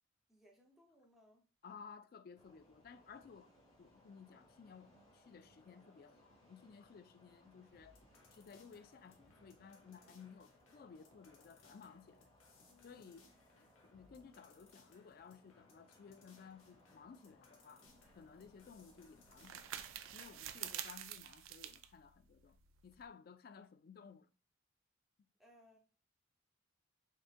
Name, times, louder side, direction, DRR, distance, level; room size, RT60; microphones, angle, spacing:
voice 1, 0.3-1.5 12.6-13.0 25.4-25.8, left 1 dB, ahead, 0.7 m, -66 dB
voice 2, 1.6-3.5 3.8-8.0 8.3-12.3 12.8-17.9 18.1-24.3 25.2-25.3, left 6 dB, 45° left, 0.3 m, -57 dB
sound 1, 2.4-20.8, left 1 dB, 30° left, 1.0 m, -68 dB
sound 2, 7.8-20.1, left 3 dB, 85° left, 1.0 m, -68 dB
sound 3, 17.9-23.1, right 11 dB, 75° right, 0.4 m, -49 dB
3.7 x 3.7 x 2.4 m
head